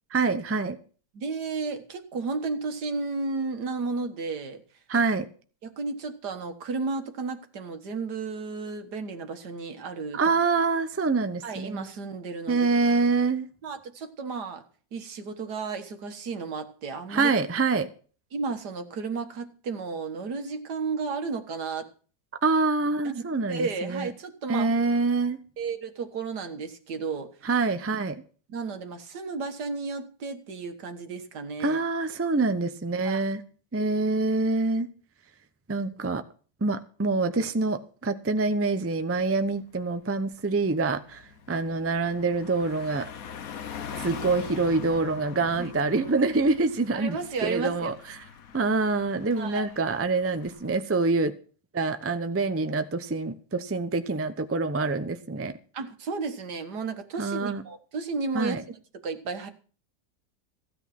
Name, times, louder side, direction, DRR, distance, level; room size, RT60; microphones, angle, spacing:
voice 1, 0.1-0.8 4.9-5.3 10.1-11.9 12.5-13.4 17.1-17.9 22.4-24.1 24.5-25.4 27.4-28.2 31.6-33.4 33.7-34.9 35.7-36.2 36.6-41.2 41.5-43.1 43.9-47.2 47.4-47.9 48.5-51.3 51.7-55.6 57.2-57.6 58.3-58.6, right 3 dB, 15° right, 9 dB, 0.5 m, -26 dB
voice 2, 1.1-4.6 5.6-10.3 11.4-12.7 13.6-14.6 14.9-17.3 18.3-21.9 23.0-24.7 25.6-27.3 28.5-31.8 33.0-33.2 45.6-45.7 46.9-47.9 49.4-49.7 55.7-58.6 58.9-59.5, right 4 dB, 80° right, 7 dB, 2.0 m, -33 dB
Car passing by, 39.2-39.5 39.8-50.8, left 7 dB, 60° left, 1.4 m, -43 dB
15.5 x 8.9 x 6.0 m, 0.41 s
omnidirectional pair, 1.7 m